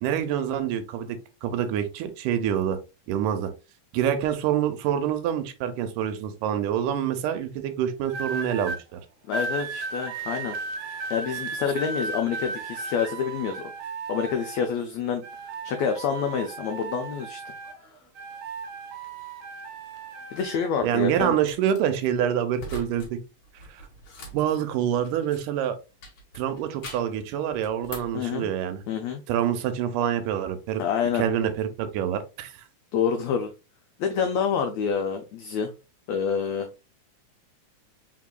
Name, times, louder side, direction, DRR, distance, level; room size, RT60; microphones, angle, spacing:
voice 1, 0.0-2.8 3.1-3.5 3.9-9.0 20.8-23.2 24.3-25.8 26.4-28.8 29.3-30.8 31.1-32.6, right 9 dB, 90° right, 10 dB, 2.2 m, -26 dB
sound 1, 8.1-8.8 9.3-14.8 15.2-17.8 18.1-20.7 21.4-21.7, right 4 dB, 70° right, 1.9 m, -35 dB
voice 2, 9.3-10.6 11.1-13.7 14.1-15.2 15.6-17.5 20.3-21.3 28.1-28.5 28.9-29.2 30.8-31.2 32.9-33.5 34.0-35.7 36.1-36.7, left 7 dB, 90° left, 5 dB, 1.5 m, -27 dB
sound 2, 21.4-21.8 22.5-23.1 23.4-25.6 26.0-27.2 27.6-28.2, left 1 dB, 55° left, 1.7 m, -42 dB
4.7 x 3.6 x 2.2 m, 0.29 s
omnidirectional pair, 3.7 m